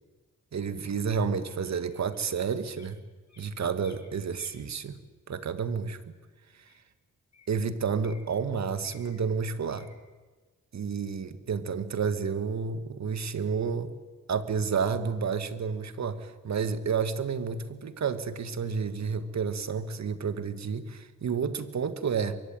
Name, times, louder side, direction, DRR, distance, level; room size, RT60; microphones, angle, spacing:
voice 1, 0.5-3.0 3.4-5.0 5.3-6.0 7.5-9.9 10.7-13.9 14.3-22.4, right 6 dB, 65° right, 11 dB, 1.9 m, -30 dB
sound 1, 1.6-2.3 2.7-2.9 3.3-4.5 5.8-5.9 6.7-6.8 7.3-8.4 8.8-9.2 9.7-10.0, left 5 dB, 65° left, 6.3 m, -57 dB
23.5 x 23.5 x 9.1 m, 1.3 s
cardioid pair, 75°, 30 cm